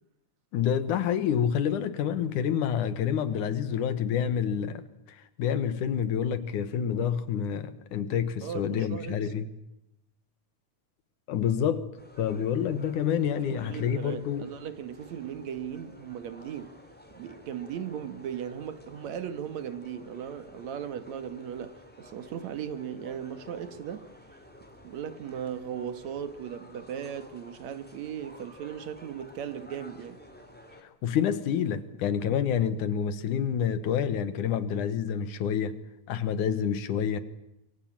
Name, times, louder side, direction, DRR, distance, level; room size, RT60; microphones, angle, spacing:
voice 1, 0.5-9.5 11.3-11.9 12.2-14.5 31.0-35.8 36.1-37.2, left 8 dB, 85° left, 2.9 m, -28 dB
voice 2, 8.4-9.3 13.5-16.8 17.1-24.1 24.8-30.2, right 8 dB, 65° right, 2.6 m, -37 dB
sound 1, 12.0-30.8, left 1 dB, 5° left, 2.9 m, -52 dB
24.0 x 23.5 x 8.9 m
omnidirectional pair, 3.5 m